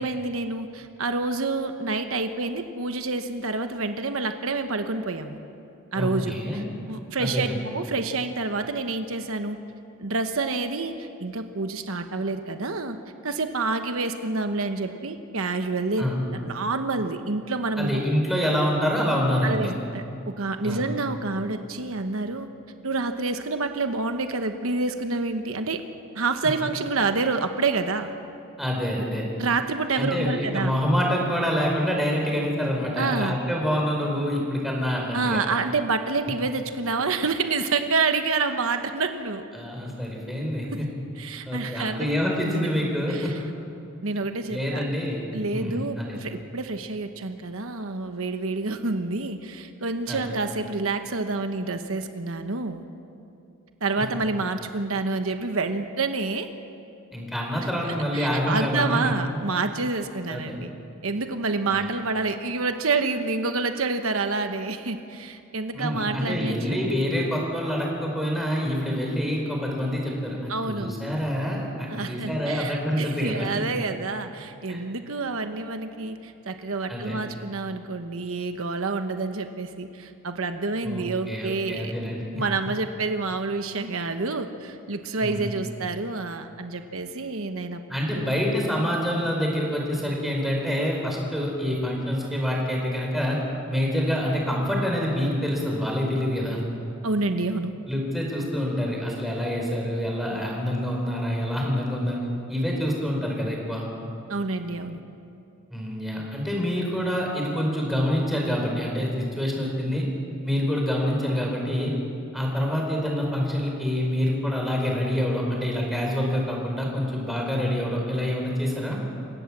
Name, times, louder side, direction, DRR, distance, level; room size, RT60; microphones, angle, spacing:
voice 1, 0.0-5.4 5.9-9.6 10.0-13.0 13.2-18.0 19.4-22.5 22.8-25.8 26.1-28.1 29.4-30.7 33.0-33.3 35.1-39.4 40.7-40.8 41.2-42.1 43.1-43.4 44.0-44.8 45.3-52.8 53.8-56.5 58.1-60.7 61.0-67.0 70.5-70.9 71.9-81.9 82.4-87.8 88.1-88.3 97.0-97.7 104.3-105.0, right 3 dB, 75° right, 7 dB, 1.1 m, -28 dB
voice 2, 5.9-6.6 7.2-7.5 16.0-16.2 17.8-19.7 20.6-20.9 28.6-29.2 30.0-35.4 39.5-40.9 41.5-43.4 44.5-45.3 45.5-46.2 50.1-50.2 54.0-54.1 57.1-59.1 60.3-60.6 61.7-61.9 65.7-73.6 74.7-74.8 76.9-77.2 80.8-82.4 85.2-85.5 87.9-93.4 93.7-96.6 97.9-102.2 102.5-103.9 105.7-110.0 110.4-111.9 112.3-119.0, equal, ahead, -1 dB, 4.7 m, -26 dB
28.0 x 16.5 x 7.4 m, 2.7 s
head